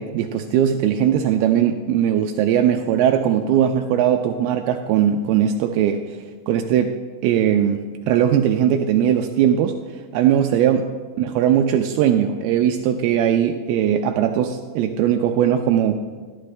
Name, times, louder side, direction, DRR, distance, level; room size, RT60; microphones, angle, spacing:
voice 1, 0.0-6.0 6.5-7.0 7.2-9.8 10.1-10.9 11.2-15.9, right 9 dB, 80° right, 5 dB, 2.3 m, -19 dB
13.5 x 11.0 x 3.2 m, 1.5 s
omnidirectional pair, 4.7 m